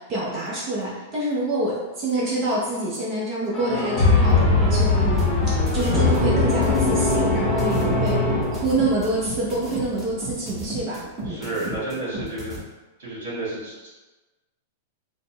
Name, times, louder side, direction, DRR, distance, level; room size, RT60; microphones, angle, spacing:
voice 1, 0.0-8.2 8.5-11.0 11.2-11.4, right 2 dB, 40° right, -6 dB, 0.8 m, -26 dB
sound 1, 3.5-9.1, left 2 dB, 10° left, 0.8 m, -24 dB
sound 2, 4.0-10.1, left 4 dB, 65° left, 0.5 m, -23 dB
sound 3, 4.9-12.6, right 1 dB, 15° right, 1.1 m, -33 dB
voice 2, 11.3-12.6 13.0-13.9, right 2 dB, 60° right, -7 dB, 1.4 m, -31 dB
4.0 x 2.1 x 2.2 m, 1.2 s
hypercardioid pair, 100°, 0 cm